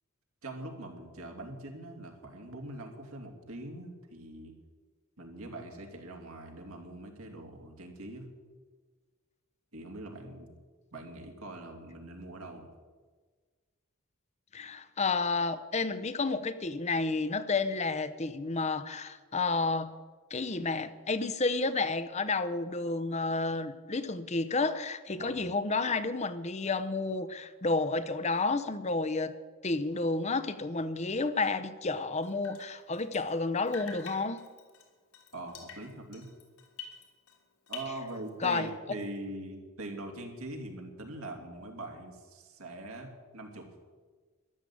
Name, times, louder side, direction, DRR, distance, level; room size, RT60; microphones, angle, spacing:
voice 1, 0.4-4.5 5.2-8.3 9.7-10.5 10.9-12.7 25.2-25.4 35.3-36.3 37.7-43.7, right 1 dB, 75° right, 2 dB, 2.9 m, -42 dB
voice 2, 14.5-19.9 20.3-29.3 29.6-34.4 38.4-38.7, left 3 dB, 30° left, 12 dB, 0.7 m, -31 dB
Drip, 32.2-33.4 33.7-37.4 37.7-38.7, left 6 dB, 85° left, 3.3 m, -48 dB
14.0 x 11.5 x 8.6 m, 1.4 s
head